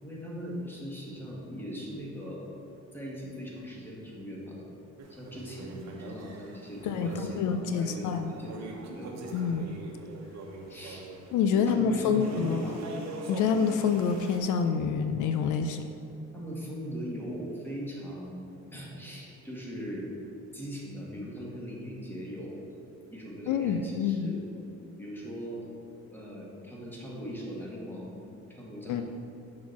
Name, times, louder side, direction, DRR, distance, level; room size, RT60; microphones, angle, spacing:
voice 1, 0.0-2.5 2.9-4.7 5.1-9.1 10.7-11.1 11.5-12.8 16.3-20.1 20.5-22.6 23.1-24.4 25.0-25.6 26.1-28.2 28.5-29.0, equal, 5° left, -4 dB, 1.7 m, -40 dB
sound 1, 5.0-14.4, right 2 dB, 60° right, 1.0 m, -43 dB
voice 2, 6.8-8.3 9.3-9.8 11.3-12.6 13.3-15.9 23.5-24.3 28.9-29.0, left 6 dB, 75° left, 7 dB, 0.5 m, -27 dB
6.3 x 4.2 x 5.8 m, 2.6 s
cardioid pair, 90°, 30 cm